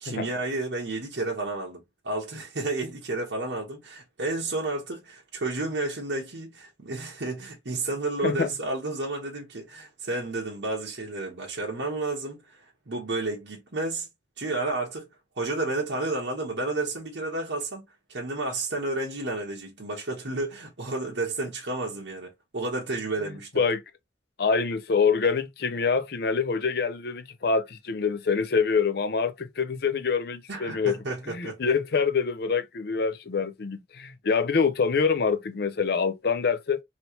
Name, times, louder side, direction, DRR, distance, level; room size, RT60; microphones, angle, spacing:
voice 1, 0.0-14.1 14.4-15.1 15.4-17.8 18.1-23.5 30.5-31.7, right 2 dB, 70° right, 1.0 m, -31 dB
voice 2, 24.4-31.0 31.3-36.8, left 5 dB, 55° left, 0.5 m, -25 dB
3.1 x 2.9 x 2.8 m
head